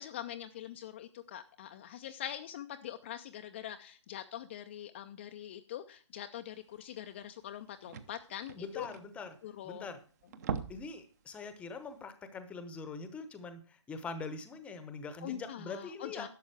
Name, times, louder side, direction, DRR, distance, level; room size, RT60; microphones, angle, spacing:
voice 1, 0.0-8.9 9.4-9.9 15.2-16.3, left 11 dB, 25° left, 7 dB, 0.4 m, -43 dB
sound 1, 6.9-7.0 7.2-7.3 7.5-9.8 10.2-11.0 11.3-11.5 11.9-12.0, right 6 dB, 35° right, 0.8 m, -41 dB
voice 2, 8.5-9.4 9.6-10.0 10.7-16.3, left 4 dB, 10° left, 11 dB, 0.8 m, -43 dB
11.5 x 7.0 x 4.6 m, 0.39 s
figure-of-eight pair, 140°, 16 cm